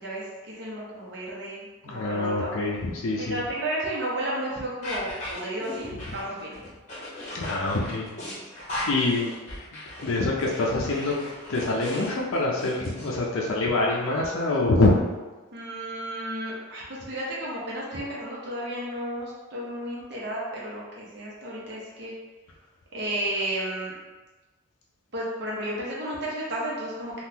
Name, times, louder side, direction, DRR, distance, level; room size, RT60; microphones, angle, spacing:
voice 1, 0.0-2.5 3.2-6.7 15.5-22.1 22.9-23.9 25.1-27.2, right 1 dB, 50° right, -5 dB, 0.9 m, -33 dB
voice 2, 1.8-3.4 7.3-8.1 8.9-9.3 10.0-11.2 11.5-14.9, left 2 dB, 75° left, -3 dB, 0.5 m, -25 dB
sound 1, 4.8-13.1, left 1 dB, 35° left, 0.9 m, -37 dB
3.6 x 2.4 x 2.8 m, 1.2 s
head